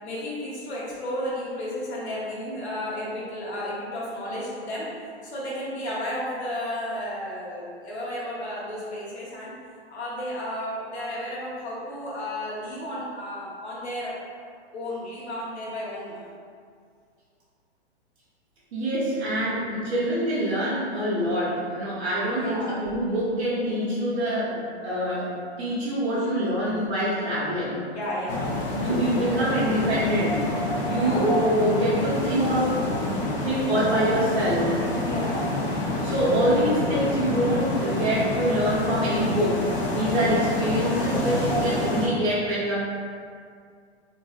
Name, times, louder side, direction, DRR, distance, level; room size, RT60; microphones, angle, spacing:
voice 1, 0.0-4.9 5.2-9.5 9.9-14.2 14.7-16.2 22.3-22.8 27.9-28.5 30.9-31.3 35.0-35.5, left 1 dB, 75° left, -6 dB, 1.1 m, -33 dB
voice 2, 18.7-25.3 25.6-27.8 28.7-30.5 30.8-34.8 36.0-39.6 39.9-42.8, right 1 dB, 70° right, -9 dB, 0.9 m, -25 dB
sound 1, 28.3-42.1, left 2 dB, 50° left, 0.6 m, -27 dB
2.6 x 2.6 x 2.4 m, 2.2 s
hypercardioid pair, 120°, 33 cm